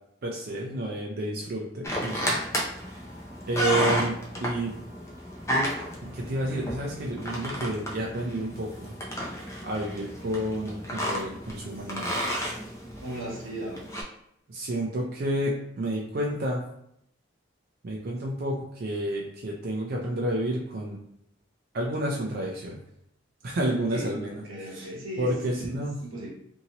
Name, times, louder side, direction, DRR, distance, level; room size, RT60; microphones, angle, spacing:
voice 1, 0.2-2.4 2.9-3.0 3.5-4.1 4.4-4.8 6.0-8.9 9.6-12.1 14.5-16.6 17.8-21.0 21.7-22.8 23.4-24.3 24.7-24.9 25.2-26.0, right 1 dB, 50° right, -2 dB, 0.4 m, -30 dB
sound 1, 1.8-14.0, equal, 15° left, 0.5 m, -32 dB
voice 2, 13.0-13.9 23.9-26.3, right 1 dB, 90° right, -2 dB, 0.9 m, -37 dB
2.7 x 2.7 x 2.8 m, 0.74 s
head